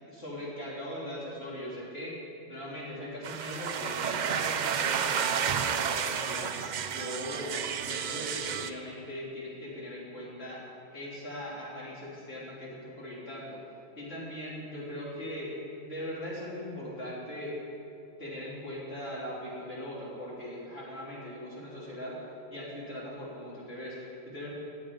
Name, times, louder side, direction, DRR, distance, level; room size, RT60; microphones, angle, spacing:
voice 1, 0.1-2.2 2.5-6.5 6.8-7.6 7.9-10.6 10.9-13.6 14.0-15.5 15.8-17.6 18.2-22.2 22.5-24.5, left 1 dB, 60° left, -7 dB, 3.6 m, -40 dB
sound 1, 3.2-8.7, right 7 dB, 55° right, 0.5 m, -31 dB
18.5 x 7.8 x 5.2 m, 2.7 s
omnidirectional pair, 1.2 m